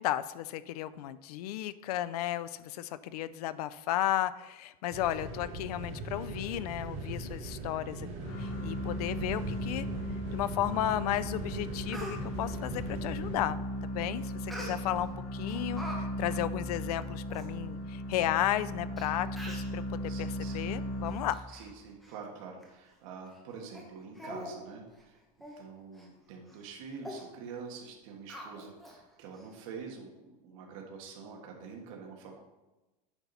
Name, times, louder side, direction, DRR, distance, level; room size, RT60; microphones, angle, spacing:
voice 1, 0.0-8.1 8.4-9.9 10.3-13.6 13.9-21.4, left 12 dB, 75° left, 15 dB, 0.5 m, -34 dB
sound 1, 4.9-13.4, right 2 dB, 30° right, 1.7 m, -40 dB
sound 2, 8.2-21.6, equal, 45° left, 1.2 m, -37 dB
Speech, 11.6-12.2 14.5-15.1 15.5-16.0 16.3-16.5 17.0-17.1 17.3-17.5 18.2-18.3 19.0-19.1 19.4-19.7 20.4-20.6 21.0-21.7 22.0-22.2 22.6-22.7 23.3-23.4 23.7-23.9 24.2-24.6 24.9-25.0 25.4-25.6 26.0-26.1 26.5-26.7 27.0-27.2 28.3-29.0 29.3-29.4, equal, ahead, 1.0 m, -44 dB
voice 2, 20.1-20.7 21.5-25.2 25.6-32.4, right 5 dB, 55° right, 0 dB, 1.6 m, -46 dB
8.8 x 5.8 x 4.0 m, 1.1 s
supercardioid pair, 175°, 20 cm